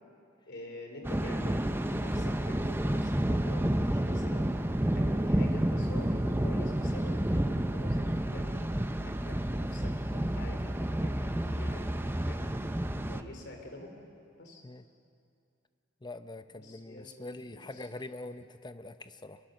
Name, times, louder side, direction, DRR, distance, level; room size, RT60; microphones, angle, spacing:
voice 1, 0.5-4.5 4.9-8.7 9.0-12.8 13.1-13.9 14.4-14.6 16.5-17.9, left 1 dB, 65° left, 3 dB, 3.8 m, -47 dB
Thunder, 1.0-13.2, right 1 dB, 10° right, 0.7 m, -30 dB
voice 2, 16.0-19.4, left 2 dB, 25° left, 10 dB, 0.8 m, -44 dB
25.5 x 22.5 x 6.6 m, 2.5 s
head